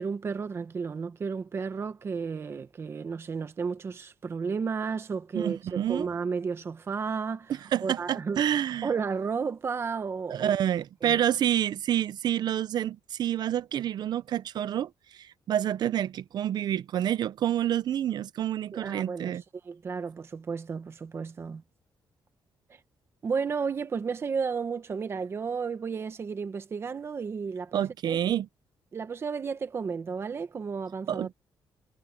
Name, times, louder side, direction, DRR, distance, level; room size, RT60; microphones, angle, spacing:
voice 1, 0.0-7.5 7.8-8.4 8.8-10.5 11.0-11.2 18.7-19.4 19.6-21.6 23.2-27.8 28.1-28.2 28.9-31.3, right 5 dB, 30° right, 1.0 m, -33 dB
voice 2, 5.3-6.1 7.5-8.9 10.3-19.4 27.7-28.5 31.1-31.3, right 11 dB, 55° right, 0.6 m, -28 dB
cardioid pair, 180°, 9 cm